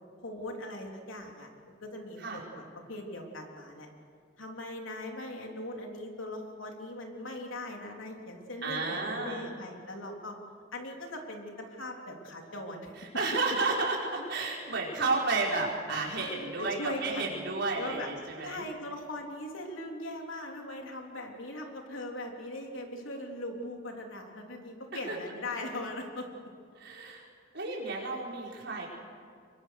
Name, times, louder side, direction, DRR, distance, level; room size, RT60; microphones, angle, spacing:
voice 1, 0.2-2.6 2.9-3.9 4.4-10.4 10.7-12.9 16.6-17.4 17.7-18.1 18.4-26.3, left 1 dB, 85° left, 1 dB, 3.6 m, -40 dB
voice 2, 8.6-9.4 13.1-18.6 25.1-25.2 26.8-27.3 27.5-28.9, right 3 dB, 60° right, -3 dB, 5.3 m, -32 dB
26.5 x 23.0 x 6.7 m, 2.2 s
head